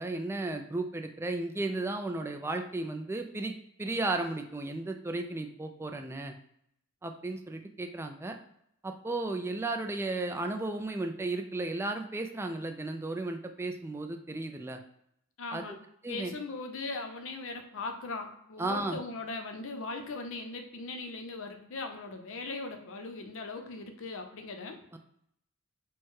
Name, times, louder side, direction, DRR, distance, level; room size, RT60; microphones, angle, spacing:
voice 1, 0.0-3.5 3.8-6.3 7.0-8.4 8.8-14.8 15.5-15.6 16.0-16.4 18.6-19.0 24.9-25.0, right 2 dB, 10° right, 5 dB, 0.3 m, -34 dB
voice 2, 15.4-15.8 16.1-24.8, left 3 dB, 60° left, 5 dB, 0.6 m, -39 dB
4.5 x 2.2 x 4.6 m, 0.74 s
head